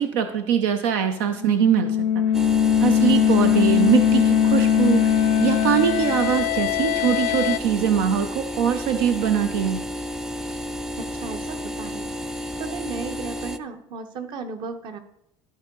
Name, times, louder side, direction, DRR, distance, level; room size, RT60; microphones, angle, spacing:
voice 1, 0.0-2.2 2.8-9.8, right 9 dB, 85° right, 7 dB, 0.7 m, -22 dB
sound 1, 1.3-7.6, left 9 dB, 80° left, 0.4 m, -20 dB
sound 2, 2.3-13.6, equal, 5° right, 0.4 m, -32 dB
voice 2, 3.7-4.3 11.0-12.1 12.6-15.0, right 4 dB, 55° right, 8 dB, 1.0 m, -35 dB
13.0 x 4.7 x 3.8 m, 0.77 s
cardioid pair, 120°, 10 cm